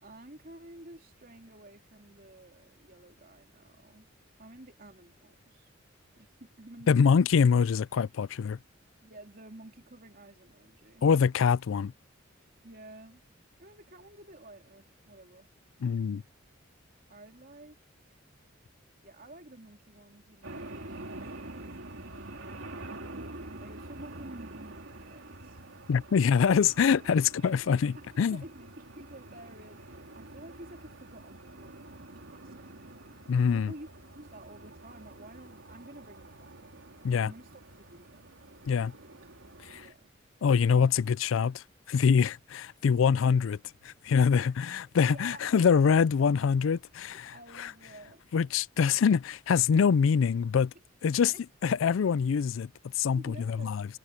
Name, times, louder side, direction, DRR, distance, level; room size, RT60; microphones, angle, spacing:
voice 1, 0.0-4.1 4.4-5.7 6.2-7.3 9.0-11.1 12.6-13.2 13.6-15.5 17.1-17.8 18.0-18.2 19.0-22.6 23.6-25.6 26.2-26.3 28.0-28.1 28.3-32.0 32.3-32.7 33.5-33.9 34.1-36.7 37.2-37.6 37.9-38.2 39.7-40.1 44.4-44.5 45.0-45.5 47.1-48.5 51.2-51.4 53.1-53.8, right 1 dB, 45° right, 3.7 m, -51 dB
voice 2, 6.9-8.6 11.0-11.9 15.8-16.2 25.9-28.4 33.3-33.7 37.0-37.3 38.7-38.9 39.7-39.8 40.4-43.6 43.8-47.7 48.3-50.7 51.0-51.3 51.6-52.7 53.0-53.9, left 6 dB, 75° left, 0.4 m, -25 dB
sound 1, 20.4-39.9, right 2 dB, 80° right, 3.0 m, -47 dB
head